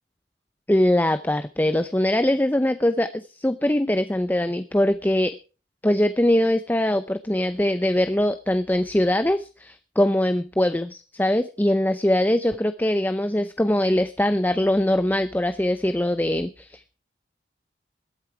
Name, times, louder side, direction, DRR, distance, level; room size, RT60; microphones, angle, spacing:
voice 1, 0.7-5.4 5.8-17.0, left 1 dB, 10° left, 11 dB, 0.6 m, -22 dB
20.5 x 8.6 x 4.7 m, 0.36 s
head